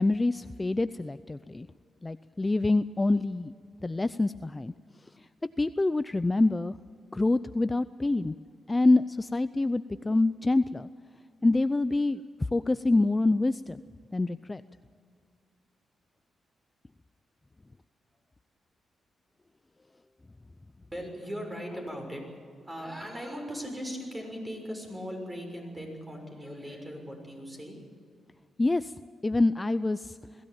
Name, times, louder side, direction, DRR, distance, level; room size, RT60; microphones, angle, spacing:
voice 1, 0.0-1.7 2.0-3.5 3.8-4.7 5.6-6.8 7.1-8.4 8.7-10.9 11.4-12.2 12.5-13.8 14.1-14.6 28.6-28.9 29.2-30.2, left 2 dB, 20° left, 13 dB, 0.5 m, -26 dB
voice 2, 20.9-22.2 22.6-27.8, equal, 15° right, 2 dB, 6.5 m, -38 dB
22.0 x 16.0 x 8.8 m, 2.2 s
cardioid pair, 90°, 0 cm